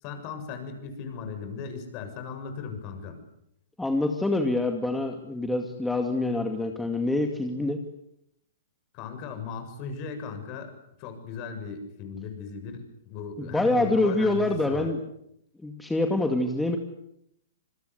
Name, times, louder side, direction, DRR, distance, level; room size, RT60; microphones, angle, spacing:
voice 1, 0.0-3.2 8.9-10.7 11.0-14.9, left 5 dB, 40° left, 7 dB, 7.1 m, -37 dB
voice 2, 3.8-7.8 13.4-15.0 15.6-16.8, left 2 dB, 5° left, 4 dB, 2.3 m, -26 dB
27.0 x 21.5 x 8.2 m, 0.78 s
hypercardioid pair, 140°, 0 cm